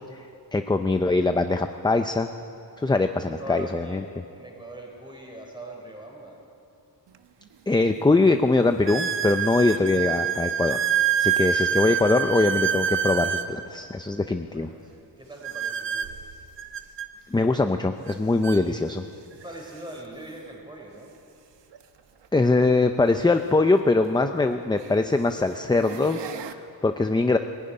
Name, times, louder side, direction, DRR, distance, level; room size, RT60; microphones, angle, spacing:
voice 1, 0.5-2.3 2.8-4.0 7.7-10.8 11.2-14.7 17.3-19.0 22.3-27.4, left 3 dB, 10° left, 7 dB, 0.5 m, -22 dB
voice 2, 3.4-6.4 14.3-16.1 19.3-21.1, right 1 dB, 10° right, 0 dB, 4.4 m, -41 dB
sound 1, 7.1-7.2 7.9-8.0 8.9-13.5 15.4-17.1 18.1-18.2 18.4-18.6 19.4-19.5 21.7-21.8 23.9-24.0 24.7-25.0 25.6-26.5, right 8 dB, 85° right, 1.1 m, -27 dB
20.5 x 15.5 x 9.8 m, 2.6 s
wide cardioid pair, 160°, 42 cm